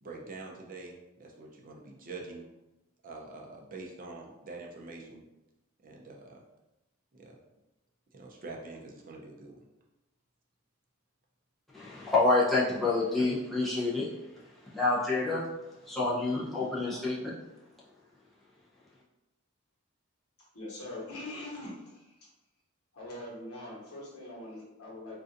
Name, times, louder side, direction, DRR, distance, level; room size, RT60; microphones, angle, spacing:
voice 1, 0.0-2.4 3.0-5.2 5.8-6.4 7.1-7.4 8.1-9.6, right 3 dB, 40° right, -1 dB, 0.5 m, -45 dB
voice 2, 11.7-14.1 14.7-15.4 15.9-17.3, left 3 dB, ahead, -9 dB, 0.7 m, -27 dB
voice 3, 20.5-22.3 22.9-25.2, left 1 dB, 85° left, -4 dB, 1.1 m, -42 dB
3.8 x 2.5 x 2.5 m, 0.99 s
head